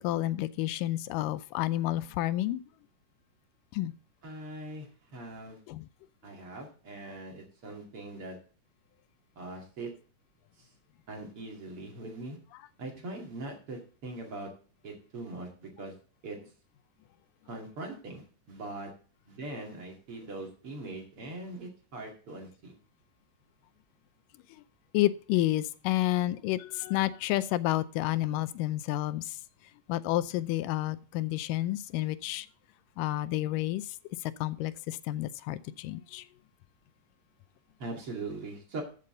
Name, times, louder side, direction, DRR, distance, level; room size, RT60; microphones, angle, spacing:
voice 1, 0.0-2.6 3.7-3.9 5.7-5.9 24.9-29.4 29.9-32.5 33.0-34.0 34.2-36.3, left 15 dB, 90° left, 2.2 m, -30 dB
voice 2, 4.2-5.6 6.2-8.4 9.4-9.9 10.6-10.7 11.1-12.4 12.8-14.5 14.8-15.9 16.2-16.4 17.5-18.9 19.3-22.7 37.8-38.8, right 2 dB, 45° right, 3.0 m, -41 dB
14.0 x 6.8 x 3.8 m
omnidirectional pair, 3.8 m